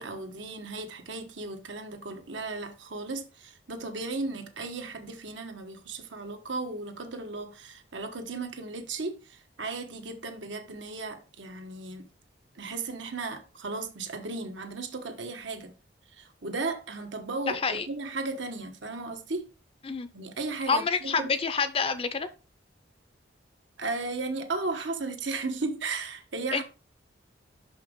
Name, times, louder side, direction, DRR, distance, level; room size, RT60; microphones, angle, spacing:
voice 1, 0.0-12.1 12.5-15.7 16.1-19.5 20.1-21.3 23.8-26.6, right 3 dB, 80° right, 1.2 m, -35 dB
voice 2, 17.5-17.8 19.8-20.1 20.7-22.3 26.5-26.6, left 5 dB, 30° left, 0.6 m, -27 dB
6.0 x 5.7 x 3.7 m
head